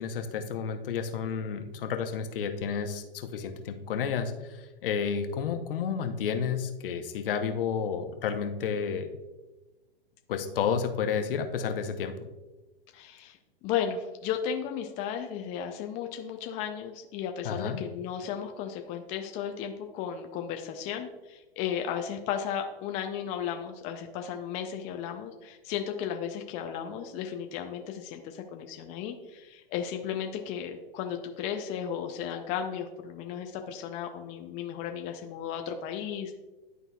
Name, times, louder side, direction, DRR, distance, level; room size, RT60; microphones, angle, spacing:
voice 1, 0.0-9.1 10.3-12.1 17.4-17.8, left 6 dB, 65° left, 6 dB, 0.9 m, -31 dB
voice 2, 12.9-13.4 13.6-36.3, left 8 dB, 25° left, 5 dB, 0.4 m, -35 dB
11.0 x 4.0 x 2.3 m, 1.1 s
hypercardioid pair, 125°, 30 cm